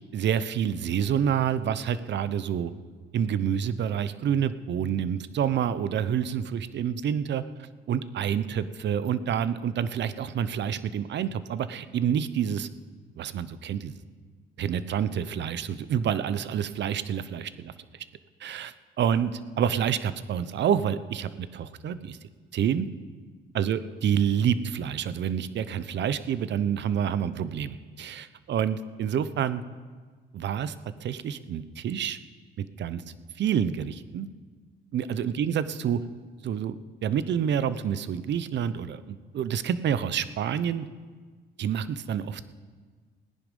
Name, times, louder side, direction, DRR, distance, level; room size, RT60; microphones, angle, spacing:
voice 1, 0.1-2.7 3.1-7.4 7.9-12.7 13.2-13.9 14.6-17.7 18.4-22.2 22.5-22.9 23.5-29.6 30.3-30.7 31.0-32.2 32.6-33.0 33.4-34.3 34.9-36.0 36.4-40.9 41.6-42.4, right 8 dB, 65° right, 15 dB, 0.7 m, -28 dB
17.5 x 10.0 x 5.4 m, 1.5 s
cardioid pair, 90°, 20 cm